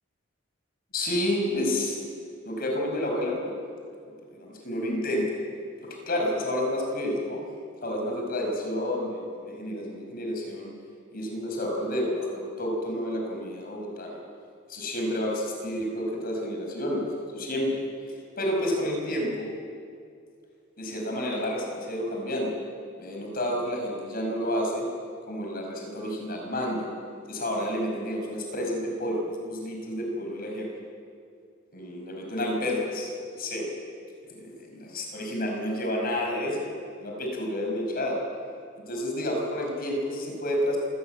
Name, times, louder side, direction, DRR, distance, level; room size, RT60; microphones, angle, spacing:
voice 1, 0.9-2.0 2.4-3.5 4.3-5.2 6.1-7.4 7.8-10.7 11.1-14.2 14.7-17.1 17.3-17.7 18.4-19.5 20.8-22.5 23.0-24.9 25.3-26.9 27.3-30.7 31.7-33.1 33.4-33.7 34.2-38.2 38.9-40.8, left 1 dB, 45° left, 0 dB, 5.3 m, -30 dB
26.0 x 13.5 x 9.1 m, 2.3 s
head